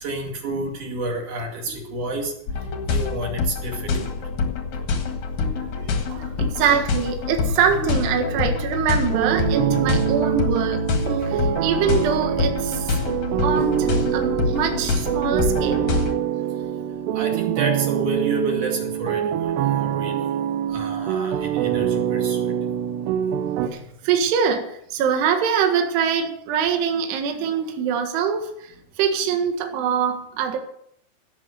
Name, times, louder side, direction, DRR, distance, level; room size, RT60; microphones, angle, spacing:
voice 1, 0.0-2.3 2.9-3.9 17.1-19.5 19.8-20.3 20.7-22.5, right 2 dB, 45° right, 1 dB, 3.2 m, -29 dB
sound 1, 2.5-16.1, left 4 dB, 60° left, 1.9 m, -26 dB
voice 2, 5.0-10.8 11.2-13.0 13.4-15.9 23.3-30.6, right 7 dB, 65° right, 5 dB, 3.4 m, -24 dB
sound 2, 9.1-23.7, right 10 dB, 85° right, 2.4 m, -24 dB
17.0 x 7.7 x 6.7 m, 0.70 s
omnidirectional pair, 5.9 m